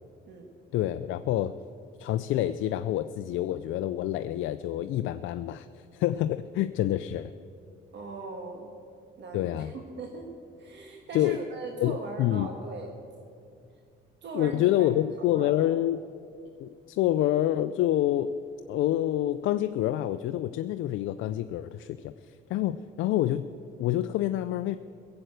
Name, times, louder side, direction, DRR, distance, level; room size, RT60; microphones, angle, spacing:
voice 1, 0.7-1.5 2.0-5.7 5.9-7.3 9.3-9.7 11.1-11.4 11.8-12.5 14.3-16.0 16.6-18.3 18.7-23.5 23.8-24.8, left 13 dB, 85° left, 11 dB, 0.4 m, -27 dB
voice 2, 7.9-8.8 9.2-10.3 10.6-12.9 14.2-14.9 15.3-15.7, right 3 dB, 65° right, 2 dB, 1.5 m, -39 dB
16.5 x 7.8 x 8.0 m, 2.4 s
cardioid pair, 90°, 20 cm